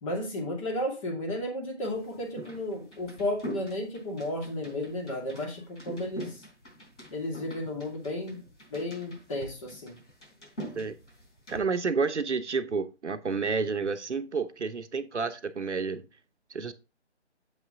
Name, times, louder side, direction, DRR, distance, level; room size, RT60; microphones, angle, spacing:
voice 1, 0.0-6.4 7.1-8.4 8.7-9.9, left 1 dB, 30° left, 2.3 m, -33 dB
sound 1, 1.9-11.6, right 1 dB, 85° left, 3.7 m, -45 dB
voice 2, 11.5-16.0 16.5-16.7, right 4 dB, 80° right, 1.0 m, -30 dB
7.3 x 5.8 x 3.6 m
figure-of-eight pair, 150°, 35 cm